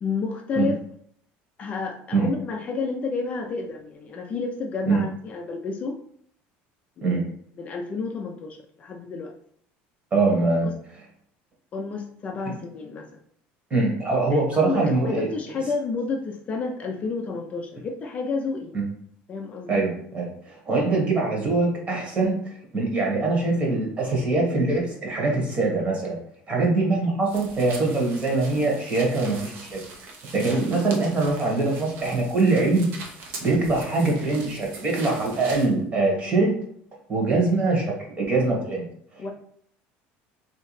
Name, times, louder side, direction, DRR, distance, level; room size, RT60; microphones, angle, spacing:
voice 1, 0.0-0.8 1.6-6.0 7.0-7.2 7.6-9.3 10.6-10.7 11.7-13.1 14.3-18.7 19.3-19.9 39.2-39.3, left 4 dB, 35° left, 2 dB, 0.4 m, -30 dB
voice 2, 10.1-10.7 13.7-15.3 18.7-18.8 19.7-22.4 22.7-26.2 26.5-29.8 30.3-32.9 33.4-36.5 37.1-38.9, right 3 dB, 30° right, -1 dB, 1.2 m, -23 dB
sound 1, 27.3-35.7, right 3 dB, 55° right, 0.8 m, -41 dB
3.1 x 2.8 x 3.1 m, 0.64 s
cardioid pair, 140°, 4 cm